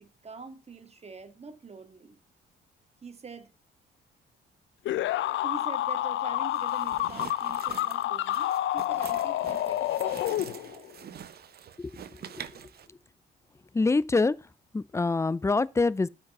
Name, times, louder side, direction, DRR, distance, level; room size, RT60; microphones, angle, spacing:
voice 1, 0.0-2.2 3.0-3.5 5.4-11.0, right 5 dB, 30° right, 1.7 m, -45 dB
sound 1, 4.8-10.9, left 13 dB, 70° left, 0.5 m, -29 dB
sound 2, 6.5-12.9, right 9 dB, 50° right, 0.8 m, -45 dB
voice 2, 13.7-14.3 14.7-16.1, left 3 dB, 15° left, 0.5 m, -25 dB
8.7 x 5.3 x 5.4 m
cardioid pair, 90°, 20 cm